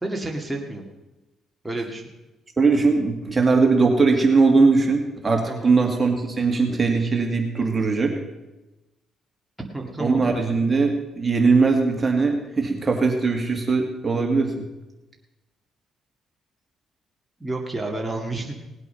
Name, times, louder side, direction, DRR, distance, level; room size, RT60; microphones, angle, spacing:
voice 1, 0.0-0.8 1.6-2.0 5.5-5.7 9.7-10.2 17.4-18.5, right 2 dB, 5° right, -1 dB, 2.1 m, -30 dB
voice 2, 2.6-8.1 10.0-14.6, right 4 dB, 30° right, 2 dB, 2.2 m, -20 dB
18.5 x 8.2 x 5.6 m, 1.0 s
cardioid pair, 90°, 0 cm